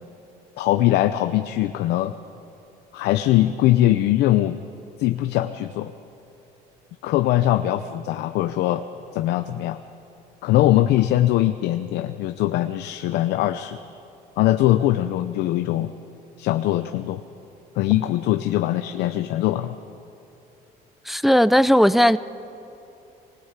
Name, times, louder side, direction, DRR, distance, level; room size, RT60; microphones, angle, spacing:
voice 1, 0.6-2.1 2.9-4.6 5.0-5.9 7.0-8.8 9.1-9.8 10.4-13.8 14.4-15.9 16.4-17.2 17.8-19.7, left 14 dB, 85° left, 9 dB, 0.7 m, -21 dB
voice 2, 21.1-22.2, equal, ahead, 14 dB, 0.5 m, -16 dB
25.0 x 19.5 x 8.2 m, 3.0 s
cardioid pair, 110°, 17 cm